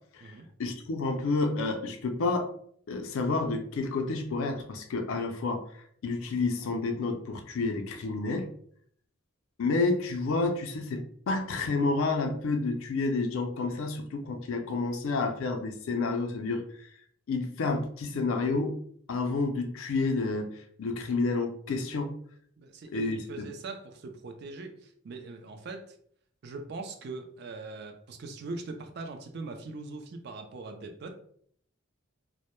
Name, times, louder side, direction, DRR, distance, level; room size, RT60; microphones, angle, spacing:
voice 1, 0.6-2.5 2.9-8.5 9.6-16.6 17.3-18.7 19.1-22.1 22.9-23.5, left 3 dB, 75° left, 6 dB, 0.4 m, -30 dB
voice 2, 22.6-26.0 26.4-31.1, right 3 dB, 50° right, 6 dB, 0.3 m, -41 dB
2.1 x 2.0 x 2.9 m, 0.63 s
head